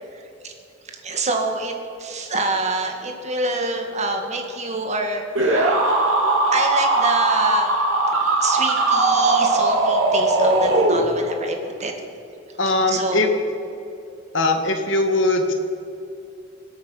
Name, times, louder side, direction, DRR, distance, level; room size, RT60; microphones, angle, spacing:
voice 1, 1.0-1.7 2.0-5.8 6.5-7.7 8.4-11.9 12.9-13.4, right 3 dB, 35° right, 3 dB, 1.9 m, -26 dB
sound 1, 5.3-11.4, right 2 dB, 90° right, 2.7 m, -19 dB
voice 2, 12.6-13.3 14.3-15.5, left 2 dB, 70° left, 5 dB, 1.5 m, -20 dB
24.5 x 8.4 x 5.9 m, 2.7 s
head